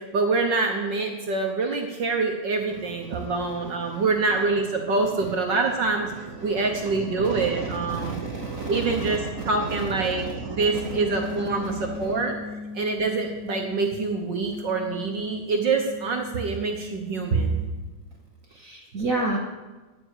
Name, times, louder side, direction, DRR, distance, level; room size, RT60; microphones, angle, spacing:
voice 1, 0.0-8.2 8.7-12.4 12.7-17.6, right 3 dB, 55° right, 3 dB, 1.3 m, -26 dB
voice 2, 2.8-4.0 6.1-12.1 17.3-17.4 18.5-19.4, right 3 dB, 75° right, 0 dB, 0.7 m, -32 dB
sound 1, 10.7-17.7, left 3 dB, 85° left, 5.0 m, -38 dB
10.5 x 9.5 x 8.2 m, 1.2 s
omnidirectional pair, 3.3 m